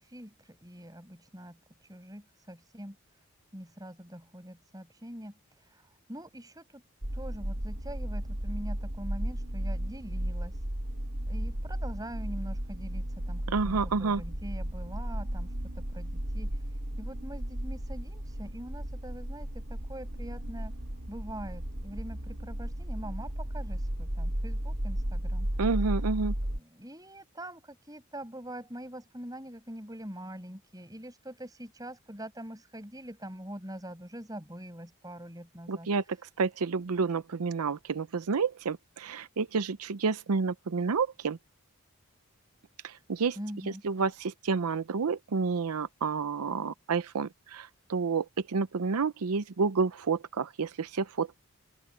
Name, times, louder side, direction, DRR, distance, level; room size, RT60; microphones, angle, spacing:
voice 1, 0.0-3.0 3.5-5.3 5.6-6.8 7.1-10.6 11.3-16.5 17.0-20.7 21.1-25.5 26.5-35.9 43.4-43.8, right 1 dB, 15° right, 5.7 m, -44 dB
sound 1, 7.0-26.6, right 1 dB, 65° right, 3.5 m, -34 dB
voice 2, 13.5-14.2 25.6-26.3 35.7-36.0 36.4-41.4 42.8-43.4 43.8-51.4, right 4 dB, 85° right, 0.6 m, -29 dB
open air
head